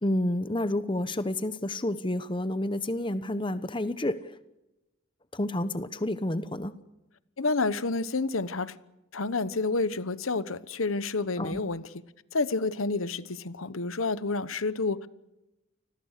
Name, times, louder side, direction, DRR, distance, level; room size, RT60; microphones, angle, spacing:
voice 1, 0.0-4.3 5.3-6.7 11.4-11.6, left 1 dB, 25° left, 1.0 m, -29 dB
voice 2, 7.4-8.7 9.1-11.9 12.3-15.1, left 3 dB, 85° left, 1.1 m, -29 dB
29.5 x 20.5 x 6.6 m
head